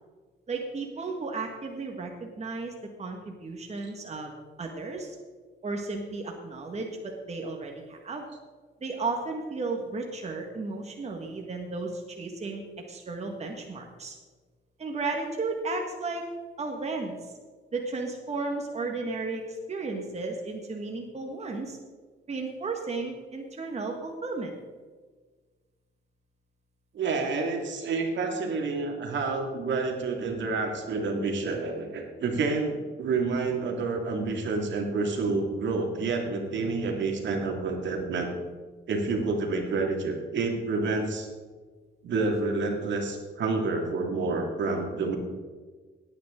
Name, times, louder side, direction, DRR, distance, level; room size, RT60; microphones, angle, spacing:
voice 1, 0.5-2.7 3.0-4.3 4.6-5.2 5.6-8.3 8.8-12.6 12.9-14.1 14.8-16.2 16.6-17.3 17.7-21.8 22.3-24.5, right 3 dB, 35° right, 2 dB, 1.7 m, -34 dB
voice 2, 26.9-38.3 38.9-41.3 42.0-45.2, right 3 dB, 65° right, 2 dB, 2.3 m, -29 dB
17.5 x 9.3 x 3.8 m, 1.4 s
cardioid pair, 90°, 20 cm